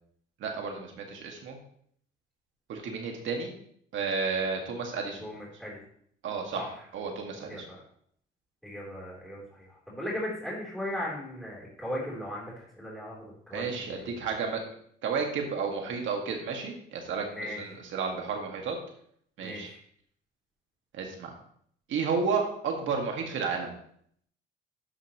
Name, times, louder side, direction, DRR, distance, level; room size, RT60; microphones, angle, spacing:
voice 1, 0.4-1.6 2.7-3.5 3.9-5.3 6.2-7.7 13.5-14.6 15.0-18.8 19.4-19.7 20.9-21.3 21.9-23.7, right 5 dB, 75° right, 2 dB, 1.9 m, -32 dB
voice 2, 5.2-5.8 6.5-6.7 7.3-7.8 8.6-13.9 17.3-17.6 19.4-19.8, left 1 dB, ahead, -6 dB, 3.6 m, -37 dB
12.0 x 5.5 x 3.0 m, 0.65 s
cardioid pair, 90°, 20 cm